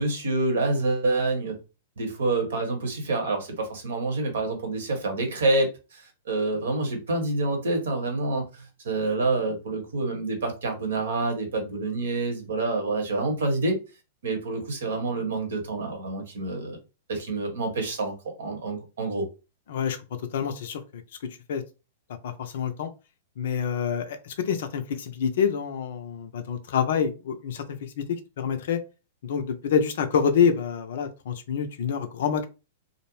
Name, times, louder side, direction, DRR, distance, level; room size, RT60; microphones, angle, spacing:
voice 1, 0.0-1.6 2.0-13.8 14.2-16.8 17.1-18.1 18.4-19.3, right 2 dB, 70° right, 0.9 m, -27 dB
voice 2, 20.3-21.6 22.2-22.9 23.4-28.8 29.2-32.5, left 7 dB, 60° left, 0.4 m, -27 dB
2.5 x 2.0 x 3.0 m
figure-of-eight pair, 105°, 0 cm